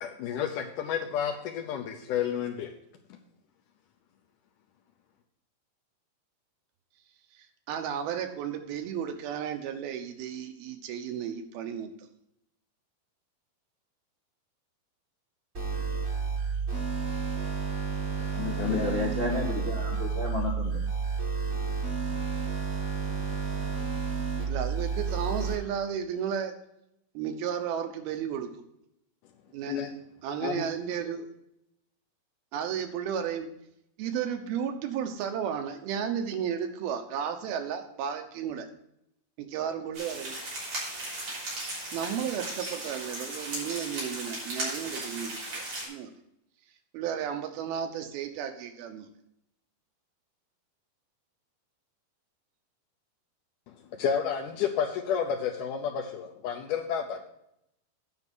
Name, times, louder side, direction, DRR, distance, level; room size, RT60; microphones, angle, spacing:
voice 1, 0.0-2.7 18.3-18.9 29.7-29.9 30.4-30.7 53.9-57.3, left 8 dB, 75° left, 3 dB, 1.9 m, -31 dB
voice 2, 7.7-11.9 24.4-26.5 27.1-28.5 29.5-29.8 30.2-31.3 32.5-33.5 34.0-38.7 39.4-40.4 41.9-46.1 46.9-49.1, right 8 dB, 85° right, 6 dB, 2.9 m, -33 dB
sound 1, 15.5-25.5, right 5 dB, 30° right, 1.4 m, -31 dB
voice 3, 18.6-20.8, left 3 dB, 50° left, -4 dB, 0.7 m, -31 dB
sound 2, 39.9-45.9, right 1 dB, 45° right, 4.4 m, -36 dB
9.6 x 5.4 x 6.1 m, 0.79 s
omnidirectional pair, 4.2 m